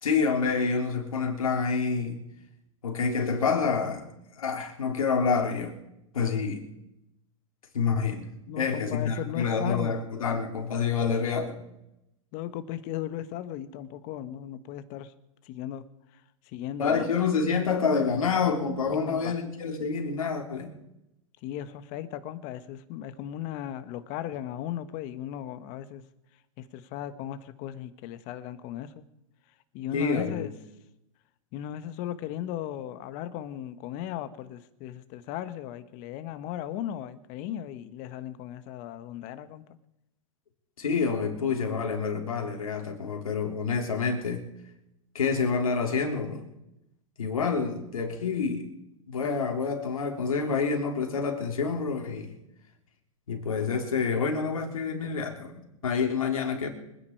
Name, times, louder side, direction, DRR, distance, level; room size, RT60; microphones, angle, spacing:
voice 1, 0.0-2.2 2.8-4.1 4.4-5.8 6.1-6.7 7.7-11.6 16.8-20.7 29.9-30.5 40.8-44.4 45.1-46.5 47.2-48.7 49.1-52.4 53.3-56.7, left 5 dB, 85° left, 3.6 m, -28 dB
voice 2, 8.5-9.9 12.3-15.1 15.4-15.8 16.1-17.1 19.0-19.3 21.4-26.0 26.6-29.0 29.7-30.5 31.5-39.6, left 11 dB, 45° left, 1.4 m, -37 dB
25.5 x 10.0 x 4.8 m
hypercardioid pair, 120°, 18 cm